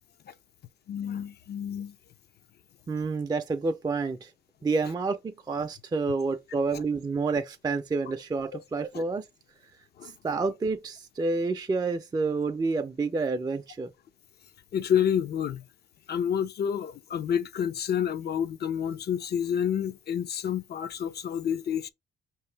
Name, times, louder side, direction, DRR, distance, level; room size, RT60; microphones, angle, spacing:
voice 1, 0.9-2.0 6.7-6.8 8.5-8.6 8.9-9.0 10.0-10.1 14.7-15.6 16.1-21.9, left 8 dB, 55° left, 0.5 m, -29 dB
voice 2, 2.9-4.3 4.6-9.2 10.0-13.9, right 4 dB, 20° right, 0.4 m, -29 dB
5.2 x 2.8 x 3.3 m
cardioid pair, 90°, 20 cm